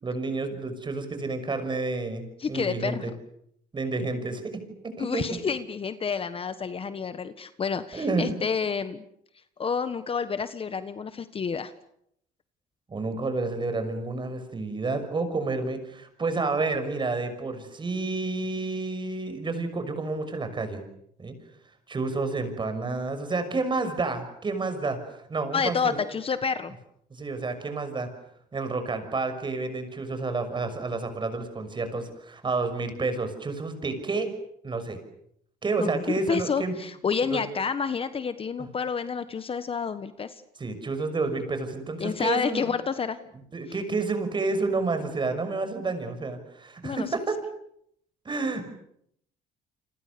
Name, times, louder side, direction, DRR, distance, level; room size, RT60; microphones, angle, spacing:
voice 1, 0.0-3.1 3.7-5.4 7.9-8.3 12.9-20.8 21.2-21.3 21.9-26.0 27.1-28.1 28.5-34.3 34.6-35.0 35.6-36.7 37.3-37.5 40.6-42.7 43.5-47.4 48.2-48.7, right 3 dB, 30° right, 9 dB, 6.1 m, -30 dB
voice 2, 2.4-3.1 5.0-9.0 9.6-11.7 25.5-26.7 35.8-40.4 42.0-43.2 46.8-47.1, left 6 dB, 35° left, 12 dB, 1.4 m, -29 dB
29.5 x 25.5 x 6.9 m, 0.73 s
cardioid pair, 110°, 17 cm